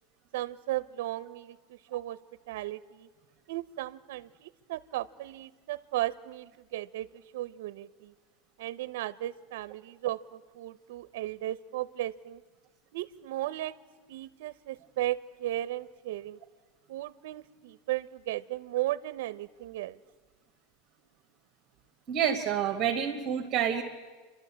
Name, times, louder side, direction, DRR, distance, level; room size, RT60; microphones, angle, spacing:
voice 1, 0.3-2.2 2.5-3.1 3.5-8.1 8.6-12.4 12.9-13.7 14.1-16.4 16.9-20.0, right 15 dB, 65° right, 18 dB, 0.6 m, -35 dB
voice 2, 22.1-23.8, right 9 dB, 25° right, 3 dB, 1.4 m, -28 dB
30.0 x 12.0 x 8.6 m, 1.4 s
supercardioid pair, 180°, 0 cm